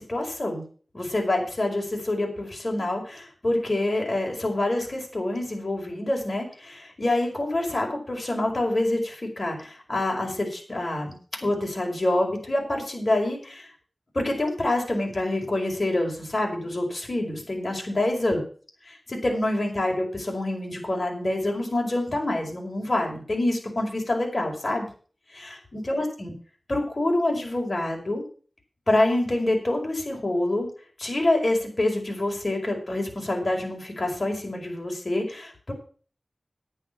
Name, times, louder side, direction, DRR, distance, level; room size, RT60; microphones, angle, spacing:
voice 1, 0.1-0.6 0.9-11.1 11.4-13.7 14.1-18.4 19.1-24.9 25.3-26.3 26.7-28.2 28.9-30.7 31.0-35.7, left 1 dB, 50° left, 1 dB, 5.0 m, -26 dB
9.8 x 9.8 x 6.0 m, 0.41 s
wide cardioid pair, 60°, 0 cm